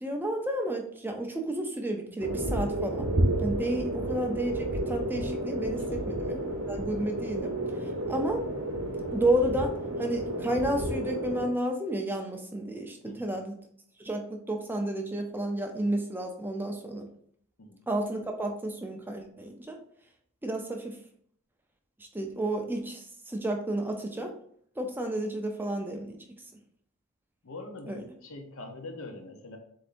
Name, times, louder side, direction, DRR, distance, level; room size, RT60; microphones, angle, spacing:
voice 1, 0.0-3.1 3.4-6.4 6.7-8.4 9.1-9.7 10.0-13.6 14.0-17.1 17.9-19.8 20.4-21.0 22.1-24.3 24.8-26.2 27.9-28.0, right 1 dB, 10° right, 3 dB, 0.4 m, -31 dB
sound 1, 2.2-11.5, right 1 dB, 75° right, 1.0 m, -31 dB
voice 2, 5.8-6.2 8.0-8.1 13.0-13.4 17.6-17.8 27.4-29.6, left 2 dB, 65° left, 4 dB, 0.7 m, -44 dB
7.6 x 2.7 x 2.5 m, 0.64 s
head